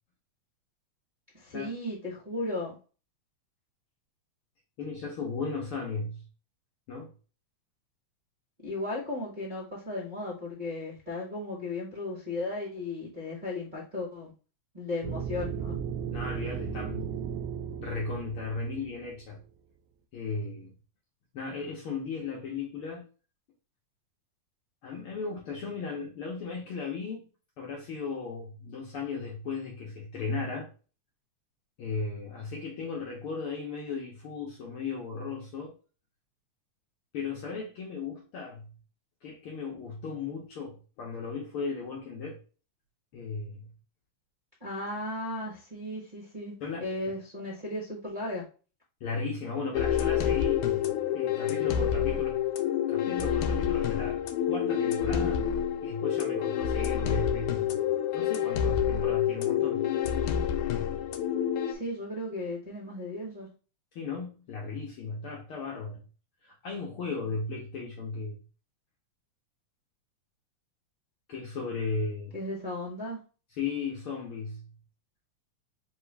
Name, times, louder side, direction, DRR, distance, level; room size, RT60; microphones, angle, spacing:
voice 1, 1.3-2.8 8.6-14.3 14.7-15.8 44.6-46.5 46.8-48.4 61.7-63.5 72.3-73.2, left 2 dB, 35° right, 0.7 m, -35 dB
voice 2, 4.8-6.3 6.9-7.1 16.1-17.2 17.8-19.4 20.1-20.7 21.3-23.0 24.8-27.2 27.6-30.7 31.8-35.7 37.1-38.7 39.2-42.4 43.1-43.7 46.6-46.9 49.0-50.7 51.1-52.4 52.9-54.2 54.5-55.6 55.8-57.7 58.1-59.9 63.9-66.0 66.4-68.4 71.3-72.3 73.6-74.7, left 4 dB, 65° left, 1.4 m, -36 dB
sound 1, 15.0-19.1, right 7 dB, 80° right, 1.7 m, -35 dB
sound 2, 49.7-61.7, left 9 dB, 90° left, 2.1 m, -28 dB
4.7 x 3.0 x 3.3 m
omnidirectional pair, 3.4 m